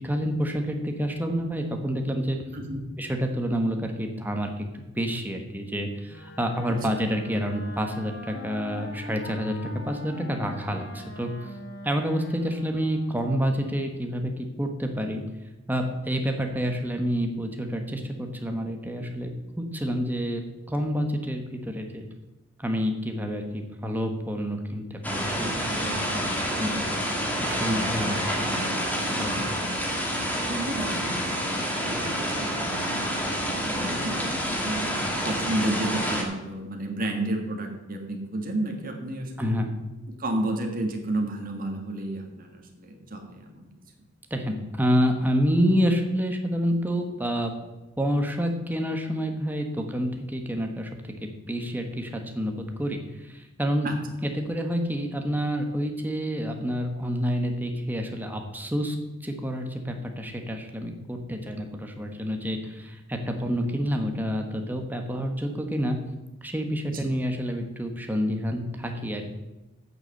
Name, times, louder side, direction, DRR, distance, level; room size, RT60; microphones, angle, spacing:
voice 1, 0.0-2.4 3.0-9.6 9.9-11.3 11.8-15.2 15.7-20.4 20.7-22.1 22.6-27.0 27.4-28.4 29.0-29.4 39.4-39.7 44.3-47.5 48.0-50.9 51.2-53.9 54.2-59.0 59.2-66.0 66.4-69.2, equal, 10° right, 4 dB, 1.2 m, -28 dB
voice 2, 2.5-2.9 6.7-6.9 29.3-29.4 30.2-31.6 31.9-32.7 33.1-34.9 35.2-39.5 40.1-43.7 53.8-54.0 66.8-67.1, right 1 dB, 45° right, 2 dB, 1.9 m, -32 dB
Wind instrument woodwind instrument, 6.0-13.4, left 2 dB, 55° left, 1.8 m, -42 dB
sound 1, 25.0-36.2, equal, 10° left, 1.7 m, -28 dB
8.8 x 6.8 x 7.7 m, 1.1 s
head